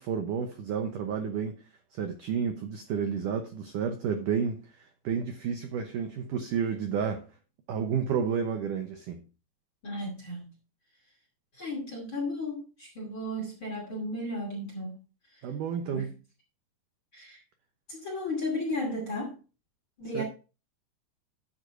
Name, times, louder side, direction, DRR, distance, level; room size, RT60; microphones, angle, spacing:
voice 1, 0.0-1.5 1.9-7.2 7.7-9.2 15.4-16.1 20.1-20.2, right 7 dB, 85° right, 1.8 m, -31 dB
voice 2, 9.8-10.5 11.5-14.9 15.3-15.4 15.9-16.1 17.1-17.4 17.9-19.4 20.0-20.2, left 1 dB, 35° left, 2.6 m, -34 dB
13.0 x 7.9 x 2.6 m
omnidirectional pair, 5.1 m